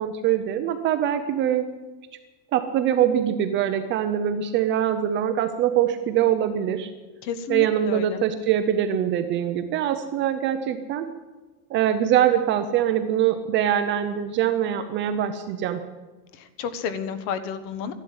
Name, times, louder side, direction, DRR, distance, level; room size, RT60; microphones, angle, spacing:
voice 1, 0.0-1.7 2.5-6.9 7.5-11.1 11.7-15.8, right 10 dB, 25° right, 9 dB, 0.5 m, -23 dB
voice 2, 7.2-8.2 16.3-17.9, left 7 dB, 50° left, 12 dB, 1.4 m, -31 dB
13.5 x 11.5 x 8.6 m, 1.2 s
supercardioid pair, 170°, 47 cm